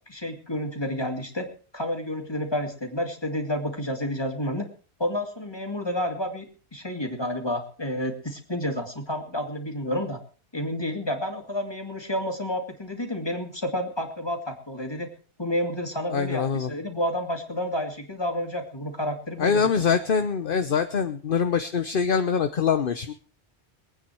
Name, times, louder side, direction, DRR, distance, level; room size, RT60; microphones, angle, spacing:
voice 1, 0.1-1.5 1.7-4.6 5.0-10.2 10.5-15.1 15.4-19.7, left 1 dB, 25° left, 3 dB, 2.7 m, -30 dB
voice 2, 16.1-16.7 19.4-23.1, left 6 dB, 55° left, 9 dB, 1.0 m, -24 dB
22.5 x 9.3 x 4.6 m, 0.38 s
omnidirectional pair, 1.1 m